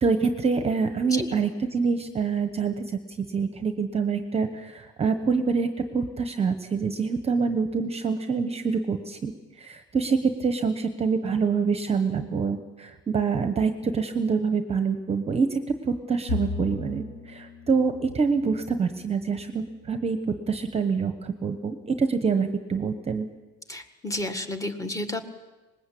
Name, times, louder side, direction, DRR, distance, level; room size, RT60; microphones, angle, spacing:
voice 1, 0.0-2.8 3.3-9.3 9.6-20.2 20.5-23.3, right 5 dB, 20° right, 8 dB, 1.1 m, -26 dB
Bowed string instrument, 16.3-19.8, left 3 dB, 65° left, 6.0 m, -36 dB
voice 2, 23.7-25.2, left 1 dB, 10° left, 6 dB, 1.7 m, -31 dB
25.0 x 20.5 x 8.5 m, 1.2 s
cardioid pair, 170°, 31 cm